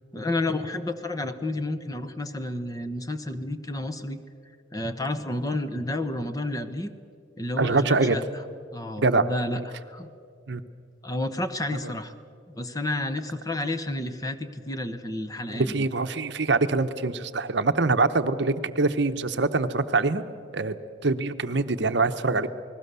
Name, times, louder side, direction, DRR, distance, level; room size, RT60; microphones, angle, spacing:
voice 1, 0.1-4.2 4.7-6.9 7.4-8.2 8.7-10.1 11.0-12.1 12.5-15.8, left 1 dB, 20° left, 9 dB, 0.9 m, -31 dB
voice 2, 7.6-8.2 9.0-9.3 9.5-9.6 10.5-10.6 15.5-20.2 20.5-20.8 21.0-22.5, right 3 dB, 60° right, 9 dB, 0.9 m, -24 dB
28.5 x 20.0 x 6.9 m, 2.4 s
head